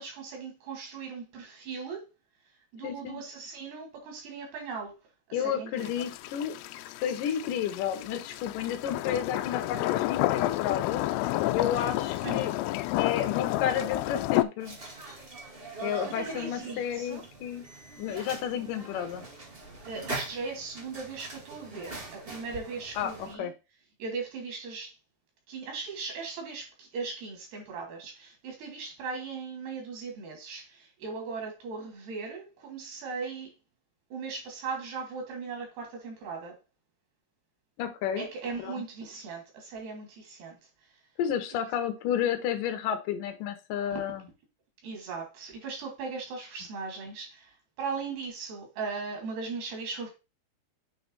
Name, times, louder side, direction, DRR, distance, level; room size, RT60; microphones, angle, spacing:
voice 1, 0.0-2.0 2.7-4.9 5.3-5.9 11.7-11.9 12.2-12.6 16.0-17.2 19.8-23.5 24.0-24.9 25.5-33.5 34.1-36.6 38.2-40.6 44.8-47.5 47.8-50.1, right 4 dB, 80° right, 5.0 m, -38 dB
voice 2, 2.8-3.2 5.3-6.6 7.0-11.0 11.5-12.5 13.0-14.8 15.8-17.6 18.0-19.2 23.0-23.5 37.8-38.3 38.6-38.7 41.2-44.3, left 9 dB, 65° left, 2.5 m, -31 dB
sound 1, 5.8-14.5, left 16 dB, 90° left, 2.6 m, -30 dB
sound 2, 14.6-23.3, right 2 dB, 30° right, 1.0 m, -42 dB
8.8 x 4.2 x 4.0 m
omnidirectional pair, 4.6 m